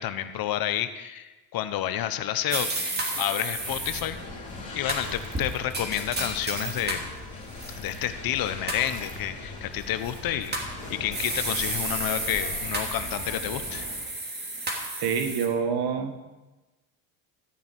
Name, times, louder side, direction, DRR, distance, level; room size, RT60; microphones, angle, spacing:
voice 1, 0.0-2.7 3.1-4.2 4.7-7.1 7.7-10.5 10.9-13.9, left 11 dB, 55° left, 11 dB, 1.0 m, -30 dB
sound 1, 2.5-4.0 4.9-7.1 7.5-8.0 8.7-9.1 10.0-10.7 11.1-15.5, right 2 dB, 20° right, 2.8 m, -32 dB
sound 2, 3.4-14.1, left 2 dB, 15° left, 4.1 m, -40 dB
voice 2, 15.0-16.3, right 6 dB, 55° right, 7 dB, 1.8 m, -27 dB
14.0 x 5.4 x 9.1 m, 1.1 s
supercardioid pair, 105°, 44 cm